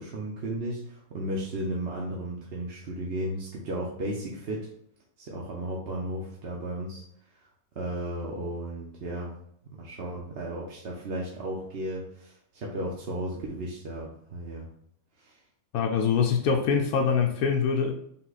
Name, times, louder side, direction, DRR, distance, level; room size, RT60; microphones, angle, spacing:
voice 1, 0.0-4.6 5.2-7.0 7.7-9.3 9.8-14.7 15.2-15.4, right 1 dB, 50° right, 0.9 m, -34 dB
voice 2, 15.7-17.9, left 6 dB, 90° left, 1.1 m, -24 dB
5.6 x 2.2 x 3.9 m
omnidirectional pair, 1.5 m